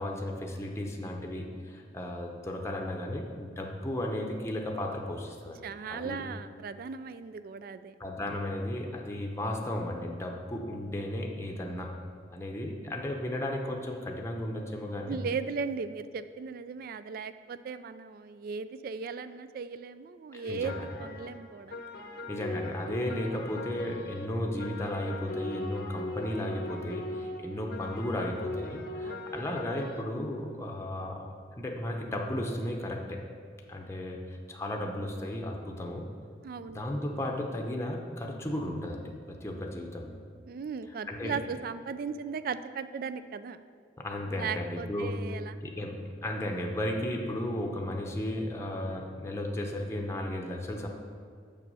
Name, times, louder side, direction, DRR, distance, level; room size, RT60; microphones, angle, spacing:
voice 1, 0.0-6.2 8.0-11.9 12.3-15.2 20.3-20.9 22.3-31.2 31.6-33.2 33.7-36.1 36.7-40.2 41.1-41.4 44.0-45.2 45.6-50.9, left 1 dB, 15° left, 0 dB, 0.7 m, -34 dB
voice 2, 5.6-7.9 15.0-21.8 29.0-29.3 36.4-36.8 40.5-43.7 44.3-45.6, right 5 dB, 55° right, 13 dB, 0.3 m, -37 dB
sound 1, 20.6-30.0, left 2 dB, 60° left, 0.7 m, -40 dB
6.9 x 6.0 x 5.4 m, 2.2 s
head